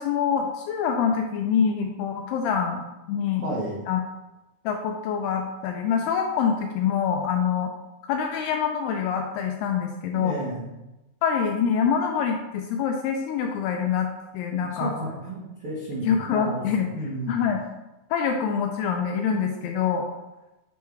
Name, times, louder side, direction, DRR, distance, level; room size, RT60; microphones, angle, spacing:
voice 1, 0.0-3.4 3.9-4.0 4.7-7.7 8.1-10.3 11.2-14.9 16.1-16.9 17.3-17.6 18.1-20.1, left 7 dB, 85° left, 3 dB, 2.3 m, -25 dB
voice 2, 3.2-3.8 10.1-10.7 14.6-16.6 16.9-17.4, right 1 dB, 75° right, -7 dB, 1.2 m, -32 dB
9.2 x 3.4 x 4.6 m, 1.0 s
omnidirectional pair, 5.0 m